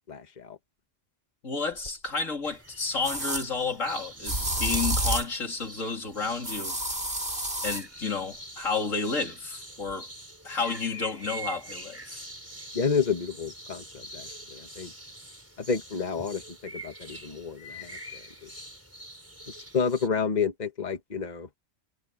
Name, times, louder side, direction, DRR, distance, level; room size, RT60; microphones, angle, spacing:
voice 1, 0.1-0.6 12.7-14.9 15.6-18.0 18.4-18.5 19.5-21.5, left 5 dB, 35° left, 1.6 m, -30 dB
voice 2, 1.4-6.8 7.6-10.1 10.4-12.2, left 4 dB, 80° left, 3.6 m, -31 dB
sound 1, 1.9-2.0 3.0-3.5 4.2-5.4 6.4-7.8, right 1 dB, 50° right, 5.4 m, -29 dB
sound 2, 2.4-20.1, right 1 dB, 10° right, 4.7 m, -44 dB
omnidirectional pair, 1.3 m